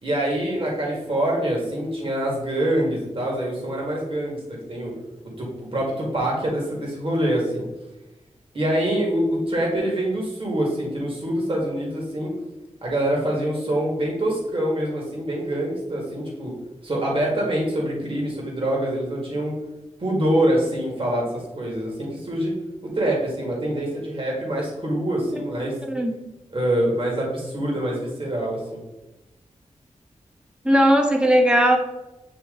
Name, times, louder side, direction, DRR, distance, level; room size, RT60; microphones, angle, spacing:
voice 1, 0.0-4.4 4.7-4.9 5.4-7.6 8.5-12.3 12.8-16.5 16.8-19.5 20.0-22.5 22.8-25.7 26.5-28.8, right 1 dB, 45° right, -3 dB, 1.8 m, -25 dB
voice 2, 30.6-31.8, equal, 10° right, 3 dB, 1.0 m, -17 dB
8.6 x 2.9 x 3.7 m, 1.0 s
wide cardioid pair, 75°, 12 cm